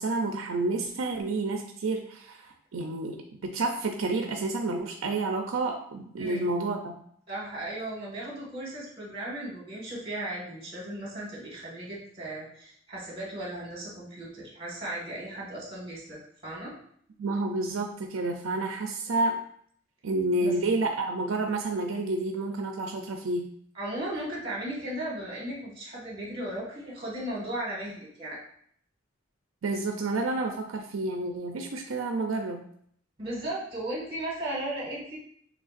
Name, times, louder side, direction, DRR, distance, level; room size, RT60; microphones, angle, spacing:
voice 1, 0.0-7.0 17.2-19.4 20.0-23.5 29.6-32.6, right 2 dB, 80° right, 3 dB, 0.5 m, -29 dB
voice 2, 7.3-16.7 20.4-20.5 23.7-28.4 33.2-35.2, right 1 dB, 25° right, -4 dB, 1.9 m, -36 dB
6.3 x 3.4 x 2.5 m, 0.64 s
head